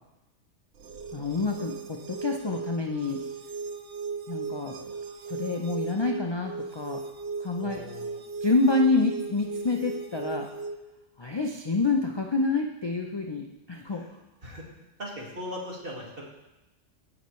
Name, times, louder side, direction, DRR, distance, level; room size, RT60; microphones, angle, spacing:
sound 1, 0.8-10.8, right 4 dB, 70° right, 1.0 m, -37 dB
voice 1, 1.1-3.2 4.3-4.8 5.3-7.0 7.4-7.8 8.4-10.5 11.2-14.0, left 3 dB, 35° left, 1 dB, 0.4 m, -27 dB
voice 2, 7.6-8.3 13.9-14.1 14.4-14.7 15.0-16.2, equal, 45° right, -3 dB, 2.2 m, -39 dB
16.5 x 6.1 x 3.2 m, 0.98 s
omnidirectional pair, 1.4 m